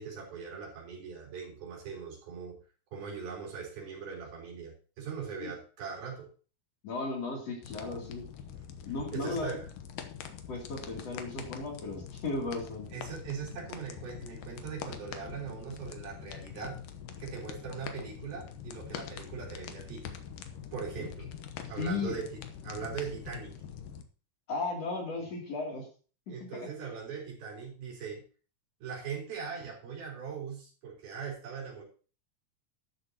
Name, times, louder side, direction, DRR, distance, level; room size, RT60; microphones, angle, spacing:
voice 1, 0.0-2.6 2.9-6.3 9.1-9.7 12.9-16.8 17.2-20.1 20.7-21.3 21.6-23.5 25.2-25.3 26.3-28.2 28.8-31.8, right 6 dB, 85° right, -2 dB, 5.7 m, -40 dB
voice 2, 6.8-8.2 8.9-9.6 10.5-12.9 21.8-22.1 24.5-25.9, left 3 dB, 45° left, -1 dB, 3.7 m, -35 dB
sound 1, 7.6-24.0, left 8 dB, 70° left, 2.5 m, -44 dB
12.5 x 11.0 x 2.9 m, 0.38 s
omnidirectional pair, 4.2 m